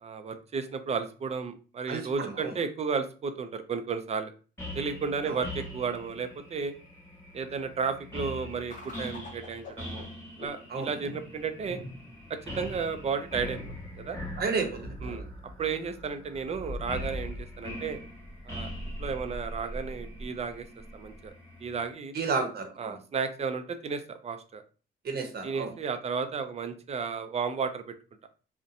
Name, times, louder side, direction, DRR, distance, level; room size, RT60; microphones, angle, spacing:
voice 1, 0.0-4.3 4.7-6.7 7.3-10.1 10.4-11.8 12.3-13.6 13.9-14.2 15.0-15.3 15.6-18.0 18.5-18.7 19.0-20.7 20.9-21.3 21.6-22.1 22.8-24.6 25.4-27.9, right 5 dB, 35° right, 9 dB, 0.4 m, -33 dB
voice 2, 1.9-2.5 5.3-5.4 10.7-10.9 14.4-15.2 22.1-23.0 25.0-25.7, right 4 dB, 50° right, 4 dB, 0.8 m, -32 dB
sound 1, 4.6-21.9, left 1 dB, 10° left, 1.1 m, -43 dB
sound 2, 8.7-21.3, equal, 40° left, 0.7 m, -43 dB
2.6 x 2.1 x 2.4 m, 0.37 s
cardioid pair, 90°, 20 cm